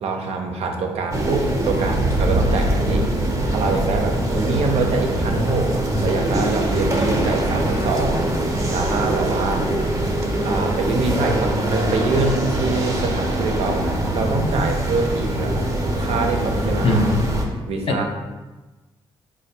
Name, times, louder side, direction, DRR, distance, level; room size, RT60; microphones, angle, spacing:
voice 1, 0.0-3.1 3.5-5.7 6.0-8.3 8.7-9.7 10.4-15.7 16.0-17.2 17.7-18.0, right 3 dB, 65° right, 3 dB, 0.6 m, -24 dB
sound 1, 1.1-17.4, right 1 dB, 25° right, 0.8 m, -22 dB
voice 2, 16.8-17.3 17.9-18.0, left 2 dB, 55° left, 3 dB, 0.6 m, -19 dB
3.3 x 2.2 x 4.1 m, 1.2 s
supercardioid pair, 60°, 11 cm